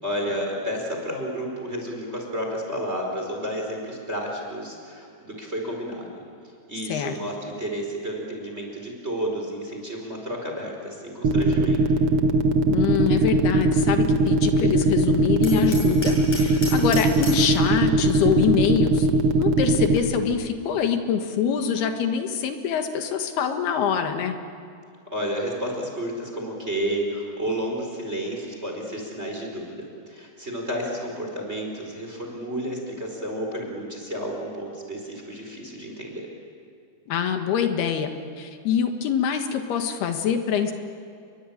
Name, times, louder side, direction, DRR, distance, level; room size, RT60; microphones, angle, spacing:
voice 1, 0.0-6.1 6.7-11.8 16.6-17.0 25.1-36.3, equal, 15° right, 1 dB, 4.7 m, -31 dB
sound 1, 11.2-20.0, right 2 dB, 65° right, 1.5 m, -20 dB
voice 2, 12.7-19.1 19.4-24.4 37.1-38.1 38.4-40.7, left 7 dB, 75° left, 6 dB, 3.7 m, -25 dB
Hammer, 15.4-17.5, left 1 dB, 45° left, 9.3 m, -35 dB
30.0 x 22.5 x 8.8 m, 2.5 s
omnidirectional pair, 4.6 m